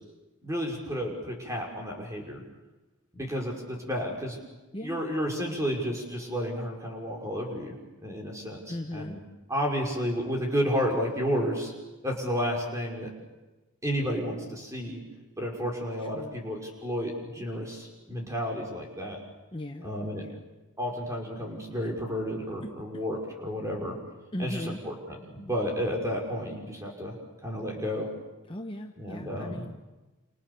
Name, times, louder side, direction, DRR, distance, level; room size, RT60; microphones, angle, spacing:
voice 1, 0.4-2.4 3.1-4.4 4.8-7.7 8.0-9.2 9.5-11.7 12.0-13.1 13.8-15.0 15.4-19.2 19.8-20.2 20.8-24.0 24.4-27.1 27.4-28.1 29.0-29.6, equal, 15° right, 0 dB, 5.6 m, -31 dB
voice 2, 8.7-9.2 16.0-16.4 19.5-19.9 20.2-20.4 22.6-23.0 24.3-24.8 28.5-29.7, left 1 dB, 25° left, 4 dB, 1.0 m, -38 dB
29.0 x 28.5 x 7.0 m, 1.1 s
head